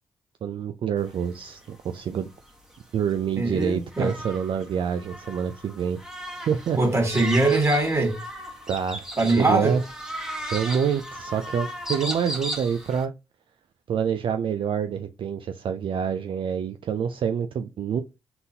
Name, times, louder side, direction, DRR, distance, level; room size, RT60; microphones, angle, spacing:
voice 1, 0.4-2.3 2.9-6.0 6.5-6.8 8.7-9.1 9.4-9.8 10.5-13.1 13.9-18.0, right 7 dB, 55° right, 0.4 m, -27 dB
sound 1, 1.0-13.1, equal, 5° right, 1.2 m, -37 dB
voice 2, 3.4-4.1 6.8-8.2 9.2-9.8, right 2 dB, 25° right, 1.9 m, -22 dB
3.9 x 3.8 x 2.7 m
hypercardioid pair, 45°, 10 cm